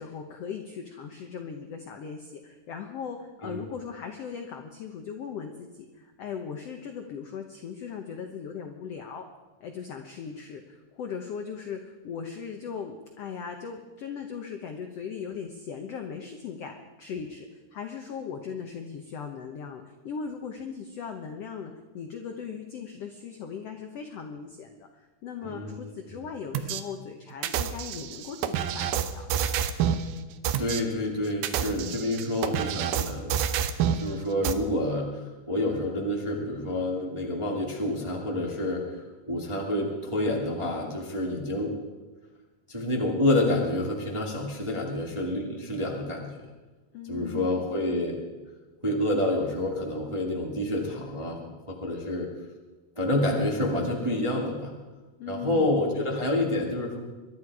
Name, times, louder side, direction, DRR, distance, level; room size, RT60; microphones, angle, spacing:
voice 1, 0.0-9.2 9.6-16.7 17.0-17.4 17.7-29.3 46.9-47.7 55.2-55.7, left 6 dB, 75° left, 5 dB, 1.4 m, -38 dB
voice 2, 25.4-26.2 30.6-33.6 33.9-38.8 39.3-41.7 42.7-46.3 47.1-48.2 48.8-51.4 51.7-52.3 52.9-54.7 55.3-57.0, left 1 dB, 15° right, -1 dB, 1.2 m, -28 dB
sound 1, 26.5-26.8 27.4-30.0 30.4-30.8 31.3-34.0 34.4-34.5, right 9 dB, 80° right, 2.6 m, -28 dB
23.5 x 11.5 x 4.8 m, 1.2 s
omnidirectional pair, 4.2 m